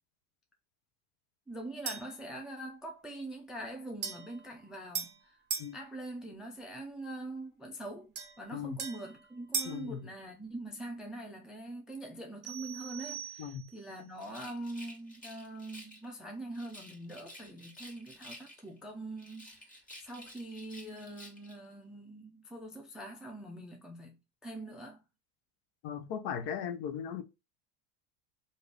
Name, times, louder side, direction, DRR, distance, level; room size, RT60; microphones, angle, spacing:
voice 1, 1.5-5.4 5.7-25.0, right 1 dB, ahead, 0.4 m, -43 dB
sound 1, 1.9-2.2 4.0-5.8 8.2-9.9, right 5 dB, 25° right, 0.8 m, -39 dB
voice 2, 9.6-10.0 13.4-13.7 25.8-27.2, left 8 dB, 55° left, 0.7 m, -38 dB
sound 2, 12.4-14.0, right 12 dB, 65° right, 0.7 m, -45 dB
Rattle, 14.2-16.1 16.5-18.8 19.2-21.6, equal, 15° left, 1.2 m, -52 dB
3.3 x 2.7 x 3.8 m
supercardioid pair, 125°, 47 cm